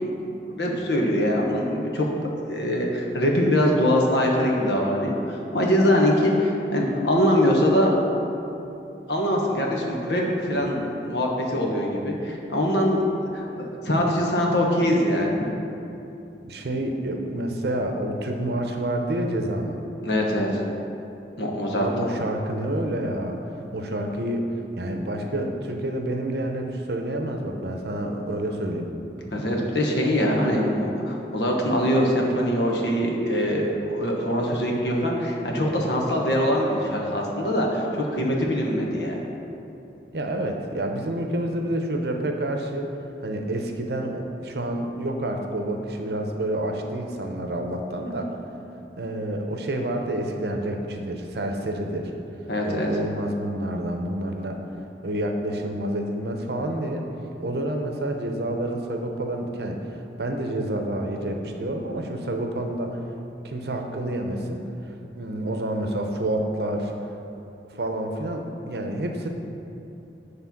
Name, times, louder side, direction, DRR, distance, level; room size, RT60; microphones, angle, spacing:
voice 1, 0.5-2.1 2.5-7.9 9.1-15.4 20.0-20.6 21.4-21.9 29.3-39.2 52.5-52.9, equal, 80° left, -1 dB, 1.1 m, -23 dB
voice 2, 16.4-19.8 21.7-23.4 23.7-24.5 24.8-28.9 40.1-42.9 43.2-48.3 49.0-52.1 52.6-54.6 55.0-57.1 57.4-59.8 60.2-63.0 63.4-64.6 65.2-66.9 67.7-69.3, right 1 dB, 70° right, 3 dB, 0.7 m, -28 dB
9.3 x 3.3 x 5.8 m, 2.8 s
head